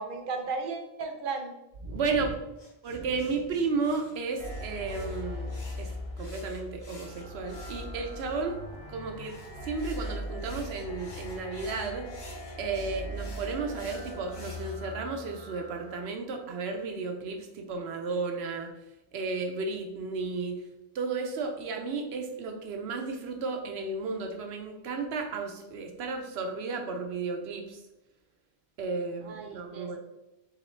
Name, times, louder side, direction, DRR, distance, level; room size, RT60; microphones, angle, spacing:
voice 1, 0.0-1.5 29.2-30.0, right 4 dB, 60° right, 4 dB, 0.8 m, -35 dB
voice 2, 1.9-2.3 2.8-5.9 6.2-8.6 8.9-12.1 12.6-18.7 19.1-20.6 20.9-27.8 28.8-30.0, right 4 dB, 85° right, 4 dB, 0.9 m, -33 dB
sound 1, 2.6-8.4 9.2-14.7, left 2 dB, 80° left, 1.4 m, -53 dB
sound 2, 4.4-16.0, left 1 dB, 40° left, 0.6 m, -40 dB
3.9 x 3.7 x 3.1 m, 0.94 s
omnidirectional pair, 1.1 m